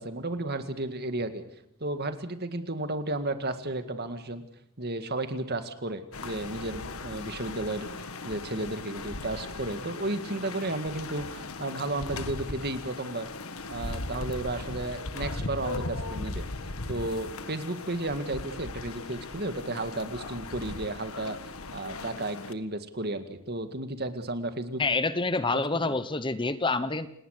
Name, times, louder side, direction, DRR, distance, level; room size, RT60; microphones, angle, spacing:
voice 1, 0.0-1.4 1.8-4.4 4.8-13.3 13.7-16.4 16.9-21.4 21.7-24.8 25.5-26.0, right 2 dB, 45° right, 9 dB, 2.1 m, -33 dB
sound 1, 6.1-22.5, left 2 dB, 70° left, 1.6 m, -38 dB
voice 2, 24.8-27.1, left 3 dB, 20° left, 13 dB, 0.9 m, -27 dB
28.5 x 19.0 x 6.7 m, 0.73 s
head